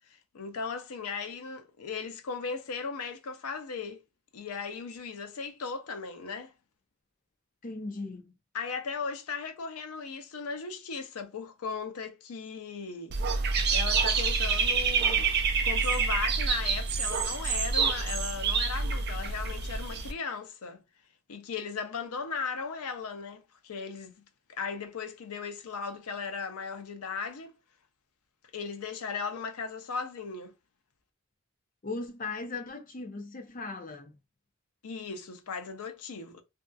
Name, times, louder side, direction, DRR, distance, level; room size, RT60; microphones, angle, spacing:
voice 1, 0.3-4.0 4.3-6.5 8.5-15.3 15.6-20.8 21.3-24.1 24.5-27.5 28.5-30.5 34.8-36.4, left 5 dB, 80° left, 0.5 m, -37 dB
voice 2, 7.6-8.3 31.8-34.2, left 3 dB, 35° left, 0.5 m, -38 dB
Dog / Bird, 13.1-20.1, right 5 dB, 45° right, 0.4 m, -27 dB
2.6 x 2.4 x 2.2 m
head